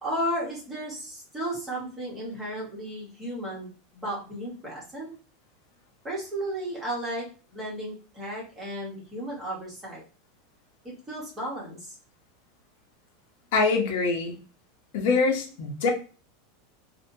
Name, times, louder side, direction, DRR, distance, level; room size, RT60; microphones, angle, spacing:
voice 1, 0.0-5.1 6.0-10.0 10.8-11.9, right 1 dB, 15° right, -5 dB, 1.0 m, -34 dB
voice 2, 13.5-14.4 14.9-15.9, left 4 dB, 55° left, 1 dB, 0.7 m, -24 dB
2.7 x 2.2 x 2.6 m, 0.36 s
supercardioid pair, 180°, 0 cm